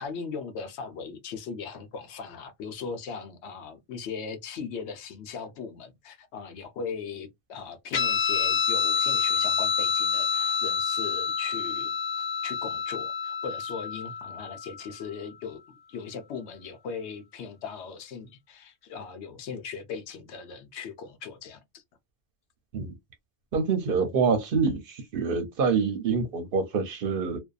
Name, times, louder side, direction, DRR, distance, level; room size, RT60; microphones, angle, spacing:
voice 1, 0.0-11.9 12.2-21.8, left 5 dB, 75° left, 0.9 m, -39 dB
Guitar, 7.9-14.8, left 6 dB, 50° left, 0.6 m, -27 dB
voice 2, 23.5-27.4, right 5 dB, 60° right, 0.7 m, -26 dB
2.5 x 2.2 x 2.3 m
omnidirectional pair, 1.1 m